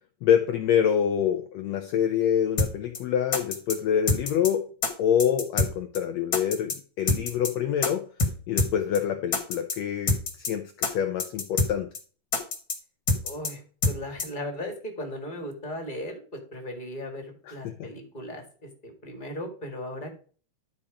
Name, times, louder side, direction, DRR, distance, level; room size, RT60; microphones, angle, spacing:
voice 1, 0.2-4.6 5.0-8.1 8.5-11.9 17.5-17.9, left 9 dB, 80° left, 7 dB, 1.5 m, -26 dB
sound 1, 2.6-2.7 2.9-3.0 3.3-3.8 4.1-4.5 4.8-4.9 5.2-5.7 5.9-6.0 6.3-6.8 7.1-7.5 7.8-7.9 8.2-8.3 8.6-8.7 8.9-9.0 9.3-9.8 10.1-10.5 10.8-10.9 11.2-11.7 11.9-12.0 12.3-12.8 13.1-13.5 13.8-13.9 14.2-14.3, left 3 dB, 45° left, 1.9 m, -25 dB
voice 2, 13.2-20.1, left 1 dB, 20° left, 3 dB, 1.4 m, -37 dB
12.0 x 4.3 x 5.0 m, 0.41 s
omnidirectional pair, 3.8 m